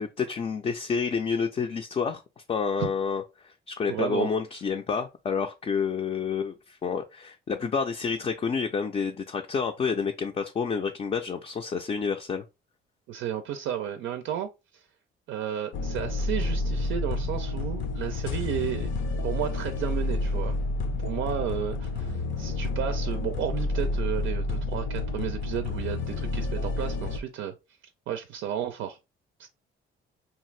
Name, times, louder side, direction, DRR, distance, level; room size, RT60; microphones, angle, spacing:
voice 1, 0.0-2.2 2.5-12.4, left 5 dB, 30° left, 0.4 m, -29 dB
voice 2, 3.9-4.3 13.1-14.8 15.3-18.9 19.2-20.5 21.0-27.5 28.1-29.0, right 10 dB, 80° right, 0.4 m, -33 dB
sound 1, 15.7-27.2, left 2 dB, 75° left, 0.6 m, -29 dB
2.8 x 2.4 x 3.1 m
cardioid pair, 90°, 20 cm